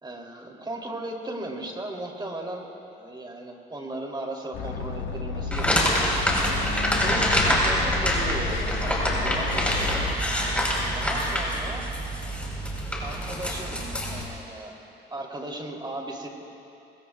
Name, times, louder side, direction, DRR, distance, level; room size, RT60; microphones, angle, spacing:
voice 1, 0.0-6.7 7.0-10.1 10.9-11.9 13.0-13.8 14.1-14.8 15.1-16.3, right 1 dB, 20° right, 0 dB, 3.1 m, -36 dB
sound 1, 4.5-10.1, left 6 dB, 80° left, 1.4 m, -32 dB
sound 2, 5.5-14.2, equal, 5° left, 4.2 m, -26 dB
26.5 x 22.5 x 2.4 m, 2.7 s
cardioid pair, 90°, 20 cm